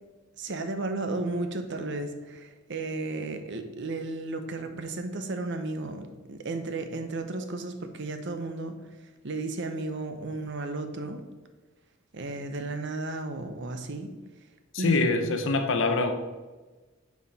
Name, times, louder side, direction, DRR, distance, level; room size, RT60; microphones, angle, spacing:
voice 1, 0.4-8.8 9.2-11.2 12.1-14.1 14.8-15.0, right 2 dB, 60° right, 7 dB, 0.8 m, -33 dB
voice 2, 14.7-16.1, left 3 dB, 65° left, 7 dB, 0.8 m, -24 dB
9.4 x 4.8 x 4.1 m, 1.2 s
head